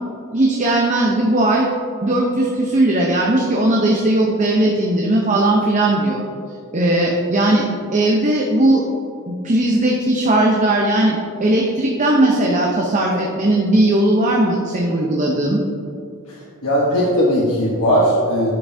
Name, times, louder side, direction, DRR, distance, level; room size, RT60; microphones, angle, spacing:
voice 1, 0.3-1.7 2.0-6.2 6.7-7.6 7.9-8.8 9.3-15.6, right 1 dB, 35° right, -1 dB, 0.7 m, -17 dB
voice 2, 16.6-18.5, equal, 80° left, -5 dB, 1.1 m, -17 dB
10.5 x 5.8 x 2.7 m, 2.5 s
head